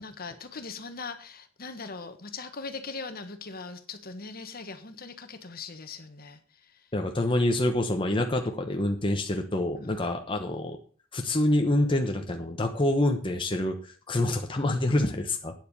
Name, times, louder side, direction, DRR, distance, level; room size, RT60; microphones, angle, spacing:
voice 1, 0.0-6.7 9.8-10.1, left 4 dB, 50° left, 8 dB, 1.3 m, -40 dB
voice 2, 6.9-10.8 11.1-15.5, left 1 dB, 25° left, 3 dB, 1.0 m, -26 dB
9.4 x 7.6 x 7.0 m, 0.42 s
head